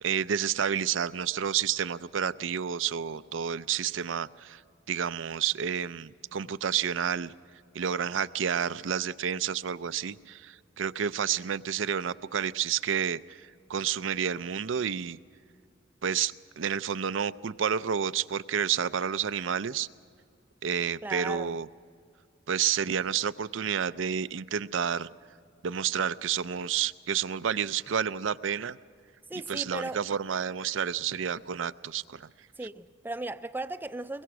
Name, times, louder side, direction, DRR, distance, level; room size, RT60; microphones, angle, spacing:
voice 1, 0.0-4.6 4.9-7.3 7.7-15.2 16.0-19.9 20.6-21.7 22.5-25.1 25.6-28.8 29.5-32.3, right 8 dB, 75° right, 0.5 m, -30 dB
voice 2, 21.0-21.5 29.3-30.0 32.6-34.2, right 2 dB, 10° right, 0.5 m, -36 dB
24.0 x 21.5 x 6.1 m
head